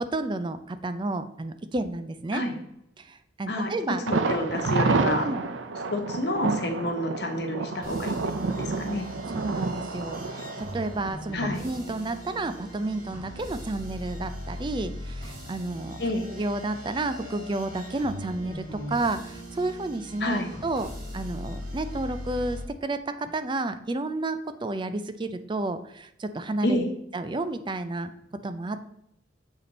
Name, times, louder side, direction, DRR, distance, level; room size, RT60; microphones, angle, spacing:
voice 1, 0.0-2.4 3.0-4.0 5.2-5.4 9.3-16.0 16.3-26.8 27.1-28.1 28.4-28.9, right 2 dB, 25° right, 10 dB, 0.4 m, -31 dB
voice 2, 3.5-5.3 5.9-8.2 8.6-9.1 11.3-11.6 16.0-16.3 20.2-20.5 26.6-26.9, left 1 dB, 60° left, 3 dB, 1.2 m, -29 dB
Thunder, 4.1-11.8 12.1-12.2 12.6-12.7, right 3 dB, 85° right, 0.5 m, -29 dB
sound 1, 7.8-22.6, equal, 50° right, 2.0 m, -39 dB
7.0 x 4.2 x 4.1 m, 0.78 s
head